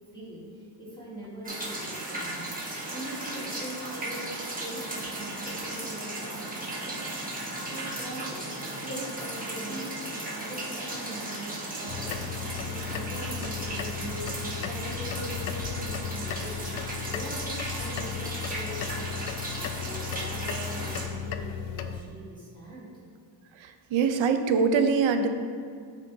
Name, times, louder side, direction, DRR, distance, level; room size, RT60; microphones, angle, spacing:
voice 1, 0.1-2.5 2.8-7.1 7.7-12.3 12.6-16.7 17.1-19.2 19.7-23.0, right 1 dB, 10° left, -9 dB, 1.6 m, -41 dB
sound 1, 1.4-21.1, right 1 dB, 20° right, 1.1 m, -36 dB
sound 2, 11.9-22.0, left 8 dB, 75° left, 0.5 m, -35 dB
voice 2, 23.6-25.3, right 5 dB, 75° right, 8 dB, 0.7 m, -24 dB
9.6 x 4.5 x 2.7 m, 2.1 s
cardioid pair, 130°, 47 cm